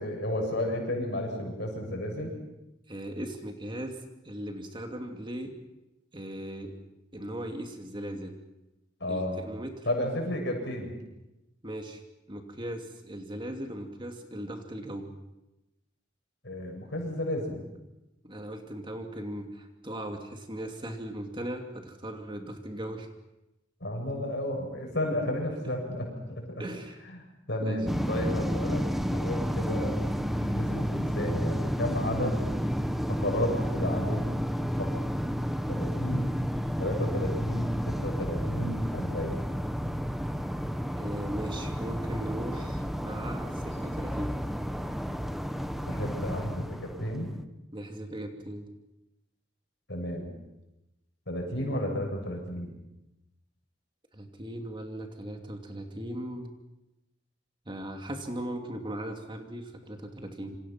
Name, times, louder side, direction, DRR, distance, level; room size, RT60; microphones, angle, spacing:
voice 1, 0.0-2.3 9.0-9.4 9.8-10.9 16.4-17.6 23.8-26.6 27.5-28.8 29.1-30.0 30.4-32.4 33.1-34.3 34.6-35.0 35.7-36.3 36.8-39.4 45.9-47.3 49.9-50.3 51.3-52.7, left 1 dB, 65° left, 2 dB, 7.5 m, -32 dB
voice 2, 2.9-4.0 4.2-5.5 6.1-6.7 7.1-8.3 9.1-9.8 11.6-12.0 12.3-15.1 18.2-23.1 26.6-27.0 27.6-27.8 40.8-44.4 47.7-48.7 54.1-56.5 57.7-60.6, right 1 dB, 25° right, 4 dB, 2.6 m, -38 dB
sound 1, 27.9-47.3, equal, ahead, 1.1 m, -31 dB
28.0 x 25.5 x 5.9 m, 0.95 s
head